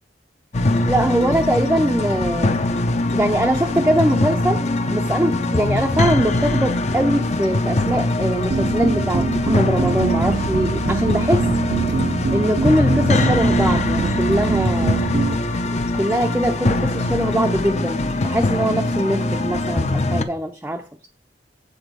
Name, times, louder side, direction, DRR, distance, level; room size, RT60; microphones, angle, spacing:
sound 1, 0.5-20.2, left 2 dB, 40° left, 0.7 m, -22 dB
voice 1, 0.8-2.6 3.1-4.7 4.9-11.5 12.3-15.0 15.7-20.8, right 1 dB, 10° right, 0.5 m, -22 dB
sound 2, 8.5-15.4, right 4 dB, 55° right, 0.5 m, -24 dB
8.1 x 4.4 x 6.7 m
head